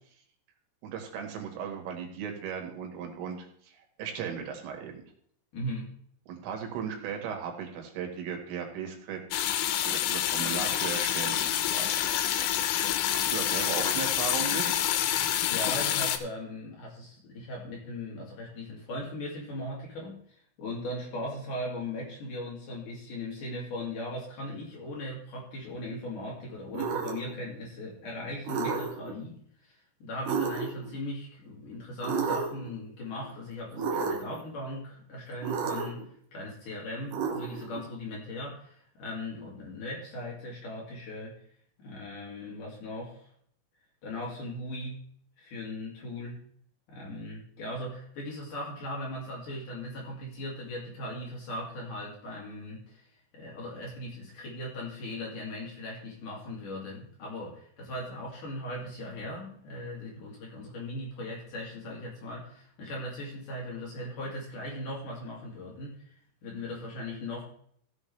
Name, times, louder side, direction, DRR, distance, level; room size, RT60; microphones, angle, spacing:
voice 1, 0.8-5.0 6.3-9.5 9.9-12.1 13.1-14.6, right 7 dB, 85° right, 3 dB, 4.4 m, -37 dB
voice 2, 5.5-5.9 13.4-13.5 15.1-41.4 41.8-43.3 44.0-45.0 45.4-46.4 46.9-66.1 66.4-67.4, left 1 dB, 50° left, -3 dB, 3.4 m, -39 dB
sound 1, 9.3-16.2, left 11 dB, 90° left, 3.4 m, -27 dB
sound 2, 26.7-27.3 28.4-29.1 30.3-30.9 32.0-32.7 33.8-34.4 35.4-36.0 37.1-37.8, right 5 dB, 65° right, 2.4 m, -31 dB
16.0 x 7.8 x 3.3 m, 0.64 s
omnidirectional pair, 5.6 m